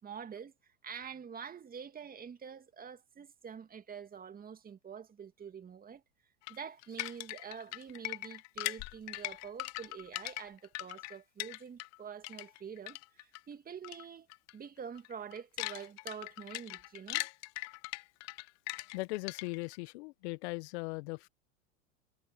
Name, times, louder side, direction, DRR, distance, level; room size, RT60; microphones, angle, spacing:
voice 1, 0.0-6.0 6.5-14.3 14.5-17.3, right 7 dB, 25° right, 2.3 m, -46 dB
sound 1, 6.5-12.0 12.2-13.4 13.8-14.0 14.3-14.5 15.0-19.8, left 23 dB, 45° left, 0.8 m, -40 dB
voice 2, 18.9-21.3, left 24 dB, 60° left, 1.4 m, -39 dB
hypercardioid pair, 100°, 38 cm